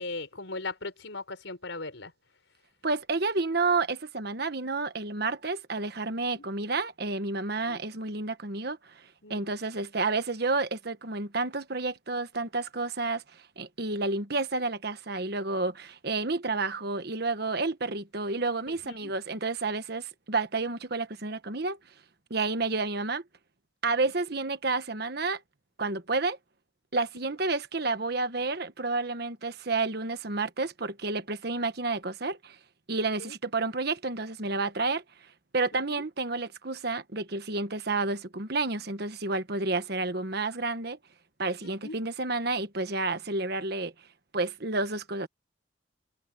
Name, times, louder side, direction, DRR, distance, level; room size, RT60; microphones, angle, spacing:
voice 1, 0.0-2.1 6.3-6.4 7.7-7.8 9.2-9.5 18.7-19.1 33.2-33.3 35.7-35.8 41.6-42.0, left 3 dB, 75° left, 4.7 m, -39 dB
voice 2, 2.8-21.8 22.3-23.2 23.8-25.4 25.8-26.4 26.9-32.6 32.9-41.0 41.4-43.9 44.3-45.3, right 3 dB, 55° right, 1.3 m, -30 dB
head